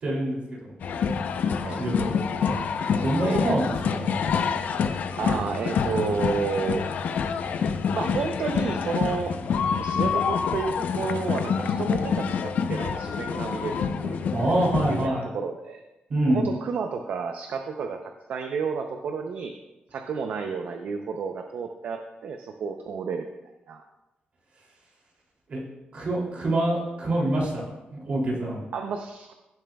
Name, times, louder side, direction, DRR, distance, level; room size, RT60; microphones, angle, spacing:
voice 1, 0.0-0.7 1.7-2.5 3.0-4.1 14.3-15.3 16.1-16.4 25.5-25.6 25.9-27.6 27.9-28.6, right 1 dB, 45° right, -4 dB, 2.8 m, -26 dB
sound 1, 0.8-15.1, left 6 dB, 60° left, 0.6 m, -27 dB
voice 2, 3.2-3.6 5.2-6.8 7.9-9.3 9.7-14.2 14.9-15.8 16.3-19.5 19.9-23.3 23.7-23.8 28.7-29.3, right 5 dB, 60° right, 5 dB, 0.6 m, -31 dB
15.5 x 7.4 x 2.3 m, 1.0 s
wide cardioid pair, 165°, 3 cm